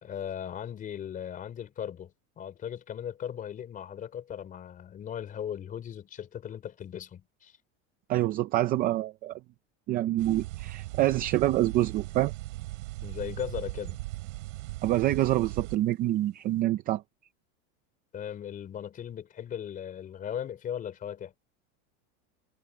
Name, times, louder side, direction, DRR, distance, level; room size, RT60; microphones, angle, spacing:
voice 1, 0.0-7.6 13.0-14.0 18.1-21.3, left 9 dB, 20° left, 4.1 m, -38 dB
voice 2, 8.1-9.3 9.9-12.3 14.8-17.0, right 15 dB, 25° right, 0.5 m, -26 dB
sound 1, 10.2-15.8, right 19 dB, 85° right, 3.8 m, -38 dB
supercardioid pair, 175°, 37 cm